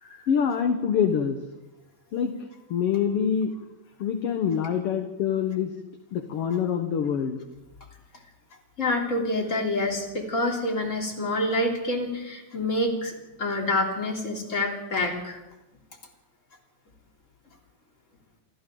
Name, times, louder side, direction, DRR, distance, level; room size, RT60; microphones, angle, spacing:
voice 1, 0.3-1.4 2.1-3.5 4.0-5.7 6.1-7.4, left 7 dB, 60° left, 6 dB, 2.0 m, -25 dB
voice 2, 8.8-13.1 13.4-15.4, left 1 dB, 25° left, 0 dB, 3.7 m, -27 dB
27.5 x 26.0 x 3.9 m, 1.0 s
omnidirectional pair, 3.4 m